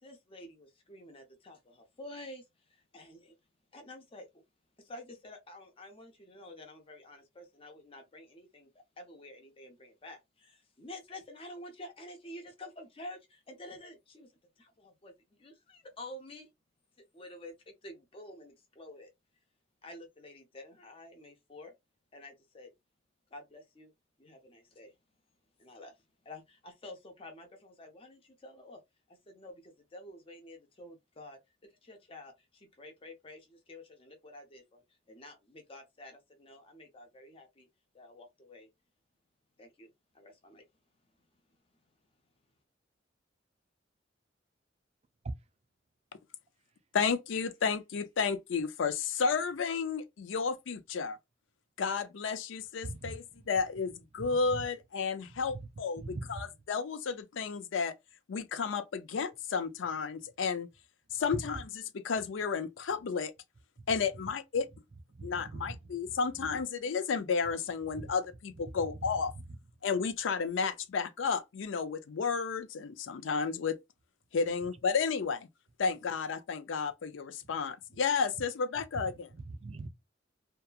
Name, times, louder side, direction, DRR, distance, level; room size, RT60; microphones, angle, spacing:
voice 1, 0.0-3.3 3.7-4.4 4.8-15.1 15.4-16.5 17.1-19.1 19.8-21.7 22.1-22.7 23.3-23.9 24.2-24.9 25.6-28.8 29.1-37.7 37.9-38.7 39.6-39.9 40.1-40.6, left 1 dB, 30° left, 0.6 m, -50 dB
voice 2, 46.9-51.2 51.8-57.9 58.3-60.7 61.1-61.7 61.9-63.3 63.9-64.7 65.2-69.3 69.8-73.8 74.3-75.5 75.8-79.3, left 5 dB, 80° left, 0.4 m, -32 dB
voice 3, 52.8-53.2 54.2-54.6 56.0-56.3 61.3-61.4 65.1-65.8 79.3-79.9, right 3 dB, 35° right, 0.4 m, -41 dB
2.8 x 2.3 x 2.3 m
head